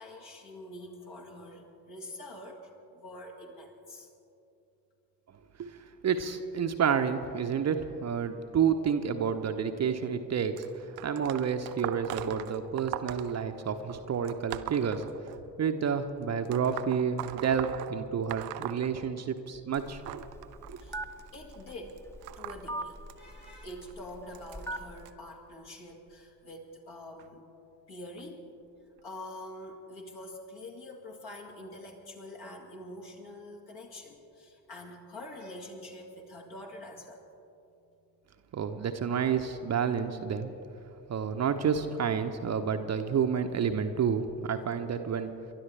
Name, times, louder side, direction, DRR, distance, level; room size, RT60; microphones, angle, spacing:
voice 1, 0.0-4.1 20.8-21.0 21.3-22.0 22.4-27.4 27.9-28.4 29.0-37.2, left 1 dB, 50° left, 0 dB, 2.3 m, -45 dB
voice 2, 5.6-15.1 15.6-20.2 20.7-20.8 38.5-40.5 41.1-45.3, right 7 dB, 35° right, 7 dB, 0.9 m, -30 dB
sound 1, 10.6-15.7 16.5-19.5 19.7-25.1 25.9-26.1 27.2-27.3 28.2-28.3 29.0-29.1, right 13 dB, 75° right, 0.7 m, -41 dB
Telephone, 19.8-25.1, right 1 dB, 5° left, 1.0 m, -42 dB
29.0 x 12.5 x 3.4 m, 2.7 s
figure-of-eight pair, 50°, 49 cm